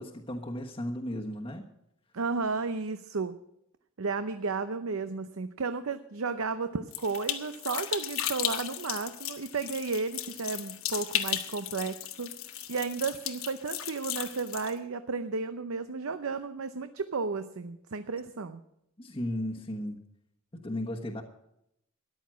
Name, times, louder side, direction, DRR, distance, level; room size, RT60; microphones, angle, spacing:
voice 1, 0.0-1.7 19.0-20.0 20.5-21.2, left 1 dB, 25° left, -3 dB, 1.2 m, -35 dB
voice 2, 2.1-3.4 4.0-12.3 12.7-18.6, right 4 dB, 80° right, 10 dB, 0.7 m, -33 dB
sound 1, 6.9-14.7, left 11 dB, 75° left, 1.2 m, -35 dB
14.0 x 10.5 x 6.2 m, 0.79 s
head